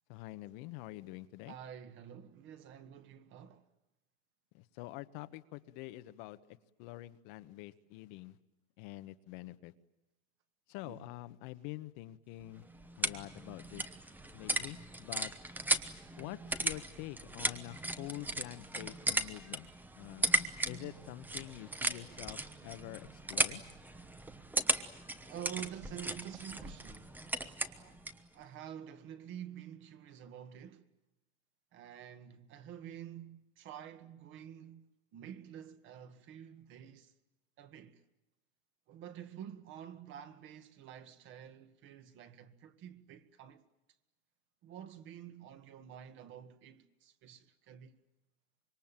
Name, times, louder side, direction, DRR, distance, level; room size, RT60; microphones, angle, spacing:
voice 1, 0.1-1.6 4.5-6.4 6.8-8.4 8.8-9.7 10.7-12.6 13.0-13.9 14.3-15.3 16.2-19.7 20.0-23.6, left 17 dB, 50° left, 1.3 m, -46 dB
voice 2, 1.5-3.7 10.8-11.1 25.3-27.2 27.7-28.0 28.3-30.9 31.7-37.1 37.6-38.0 38.9-43.6 44.6-47.9, right 9 dB, 35° right, 1.9 m, -49 dB
sound 1, 12.4-28.3, right 2 dB, 5° right, 1.1 m, -37 dB
26.0 x 22.5 x 9.0 m
supercardioid pair, 145°, 32 cm